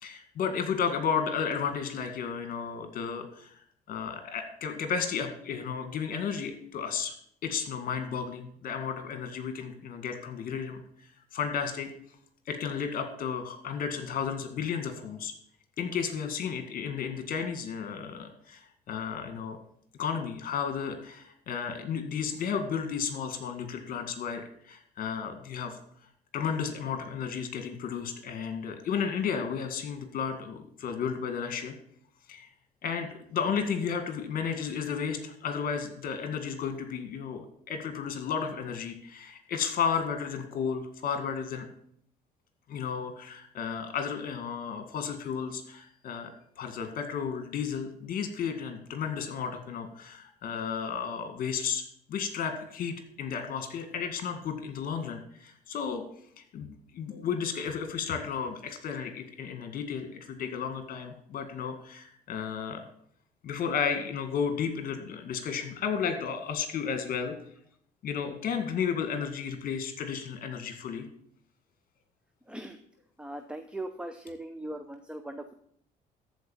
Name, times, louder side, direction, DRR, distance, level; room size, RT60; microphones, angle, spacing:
voice 1, 0.0-3.6 3.9-7.1 7.4-11.9 12.5-15.3 15.8-19.6 20.0-25.8 26.3-31.7 32.3-32.5 32.8-41.7 42.7-46.3 46.6-51.8 52.1-56.0 56.4-56.7 56.9-62.9 63.4-67.4 68.0-71.1, left 6 dB, 55° left, 7 dB, 2.0 m, -33 dB
voice 2, 72.5-72.8 73.2-75.5, right 1 dB, 5° right, 7 dB, 0.7 m, -39 dB
14.0 x 4.7 x 7.1 m, 0.67 s
cardioid pair, 110°, 17 cm